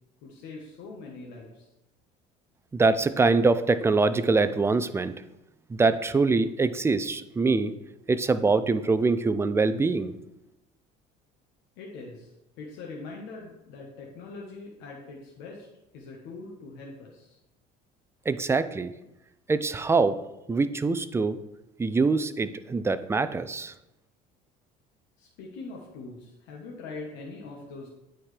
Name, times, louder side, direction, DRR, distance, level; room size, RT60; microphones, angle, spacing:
voice 1, 0.2-1.7 11.8-15.7 15.9-17.4 25.2-27.9, left 3 dB, 75° left, -2 dB, 1.3 m, -42 dB
voice 2, 2.7-5.1 5.7-7.7 8.1-10.1 18.3-18.9 19.5-20.2 20.5-21.4 21.8-23.7, right 3 dB, 15° right, 12 dB, 0.4 m, -24 dB
9.3 x 4.4 x 3.3 m, 0.90 s
supercardioid pair, 100°, 18 cm